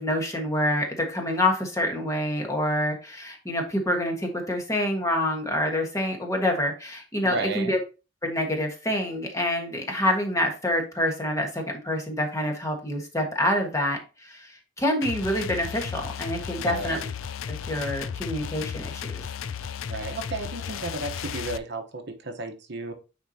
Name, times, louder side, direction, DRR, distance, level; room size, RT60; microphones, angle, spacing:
voice 1, 0.0-7.8 8.2-17.1 17.7-19.1, left 1 dB, 15° left, 2 dB, 1.4 m, -27 dB
voice 2, 7.2-7.8 16.6-17.0 19.9-22.9, right 2 dB, 55° right, 6 dB, 1.0 m, -33 dB
sound 1, 15.0-21.6, left 7 dB, 75° left, 0.4 m, -34 dB
9.2 x 4.3 x 2.8 m, 0.31 s
head